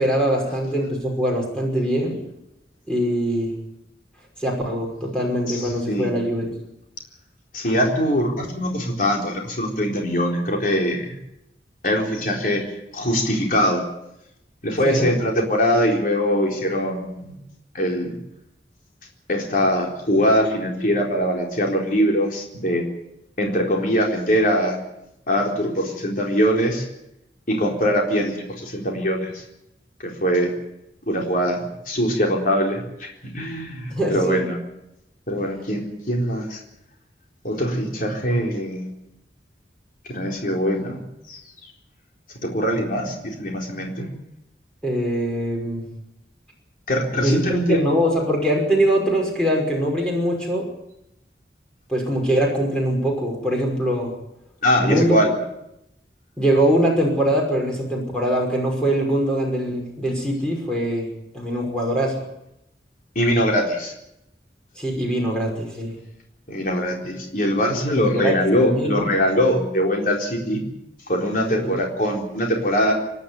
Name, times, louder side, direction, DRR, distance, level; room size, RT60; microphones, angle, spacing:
voice 1, 0.0-2.2 2.9-3.5 4.4-6.5 14.8-15.1 33.9-34.4 44.8-45.9 47.2-50.7 51.9-54.1 54.8-55.2 56.4-61.1 61.3-62.2 64.8-66.0 68.0-69.1 71.5-71.7, right 1 dB, 5° left, -1 dB, 5.6 m, -22 dB
voice 2, 5.5-6.1 7.5-11.1 11.8-12.6 12.9-13.8 14.6-17.4 17.7-18.1 19.3-22.8 23.4-24.8 25.3-26.8 27.5-29.4 30.0-30.5 31.1-34.6 35.3-36.6 37.4-38.9 40.1-41.0 41.3-41.4 42.4-44.1 46.9-47.8 54.6-55.3 63.2-63.9 66.5-70.6 71.1-72.9, equal, 50° left, 0 dB, 4.0 m, -22 dB
26.0 x 11.5 x 9.4 m, 0.84 s
head